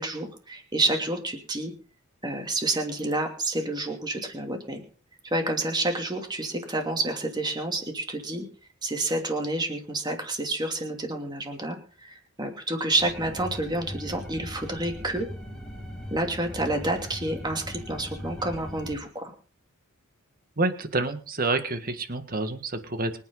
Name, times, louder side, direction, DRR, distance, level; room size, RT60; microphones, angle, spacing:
voice 1, 0.0-1.7 2.2-4.8 5.2-8.5 8.8-15.3 16.1-19.3, right 2 dB, 20° right, 3 dB, 2.8 m, -29 dB
sound 1, 13.0-19.0, equal, 5° left, 2.3 m, -39 dB
voice 2, 20.6-23.2, right 2 dB, 40° right, 8 dB, 1.7 m, -28 dB
24.5 x 9.1 x 4.0 m, 0.40 s
head